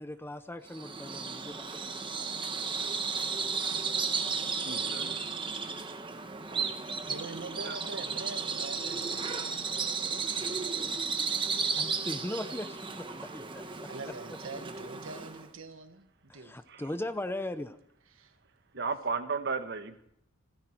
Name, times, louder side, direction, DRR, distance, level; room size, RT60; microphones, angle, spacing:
voice 1, 0.0-1.7 2.0-2.2 2.8-2.9 11.8-13.9 16.3-17.8, left 1 dB, 10° left, 0.7 m, -39 dB
Bird vocalization bird call bird song, 0.7-15.5, right 5 dB, 25° right, 1.1 m, -34 dB
voice 2, 4.6-5.3 5.9-6.0 7.6-7.8 16.7-16.8 18.7-20.0, right 4 dB, 55° right, 1.3 m, -34 dB
voice 3, 7.1-9.2 10.1-10.5 13.9-16.5 18.1-18.3, right 3 dB, 75° right, 1.3 m, -44 dB
28.5 x 10.0 x 4.5 m
head